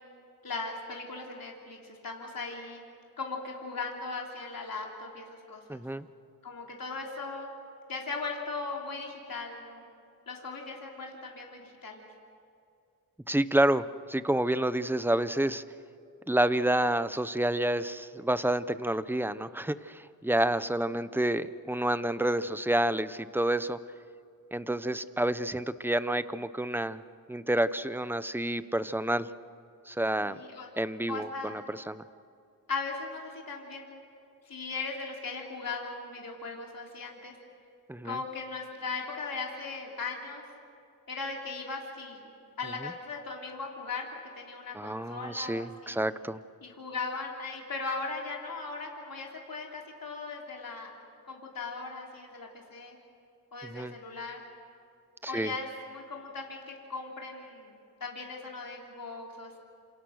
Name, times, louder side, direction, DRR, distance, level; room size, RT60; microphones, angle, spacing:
voice 1, 0.4-2.8 3.2-5.8 6.4-7.5 7.9-9.9 10.3-12.0 30.2-30.7 31.1-31.6 32.7-34.0 34.4-37.4 38.0-40.4 41.1-42.2 42.6-44.1 44.3-46.0 46.6-50.9 51.3-53.0 53.5-54.4 55.3-57.7 58.0-59.6, left 4 dB, 70° left, -1 dB, 3.4 m, -38 dB
voice 2, 5.7-6.1 13.3-15.6 16.3-23.8 24.5-27.0 27.3-29.3 29.9-30.4 30.8-32.0 37.9-38.2 44.7-46.4 53.6-53.9 55.2-55.5, right 1 dB, 5° right, 14 dB, 0.9 m, -29 dB
28.5 x 27.5 x 6.5 m, 2.5 s
cardioid pair, 65°, 36 cm